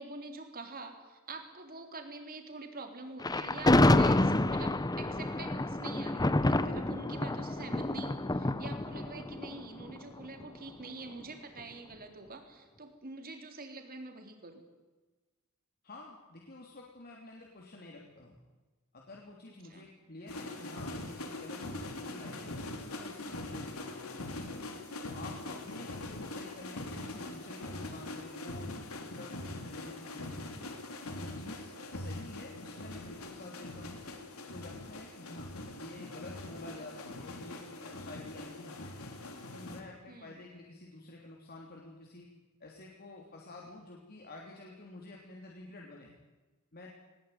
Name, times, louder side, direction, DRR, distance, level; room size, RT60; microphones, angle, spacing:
voice 1, 0.0-14.6 19.7-19.8 40.1-40.4, right 3 dB, 45° right, 5 dB, 3.5 m, -46 dB
Thunder, 3.2-10.4, left 2 dB, 20° left, 0.7 m, -28 dB
voice 2, 15.8-18.4 18.9-22.5 22.9-24.4 25.1-29.3 29.6-30.5 31.1-34.0 34.4-38.8 39.5-42.3 42.6-46.1 46.7-46.9, left 2 dB, 45° left, -1 dB, 3.2 m, -49 dB
sound 1, 20.3-39.8, left 2 dB, 90° left, 3.5 m, -42 dB
20.0 x 20.0 x 9.5 m, 1.2 s
head